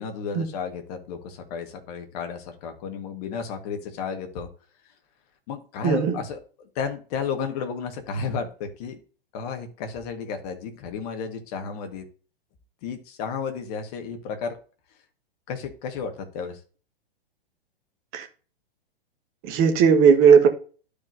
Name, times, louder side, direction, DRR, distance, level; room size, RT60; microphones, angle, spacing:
voice 1, 0.0-4.5 5.5-9.0 9.3-12.1 12.8-14.6 15.5-16.6, left 6 dB, 40° left, 1.6 m, -33 dB
voice 2, 5.8-6.2 18.1-18.3 19.4-20.5, right 6 dB, 30° right, 1.4 m, -16 dB
11.5 x 4.9 x 2.7 m
figure-of-eight pair, 110°, 30 cm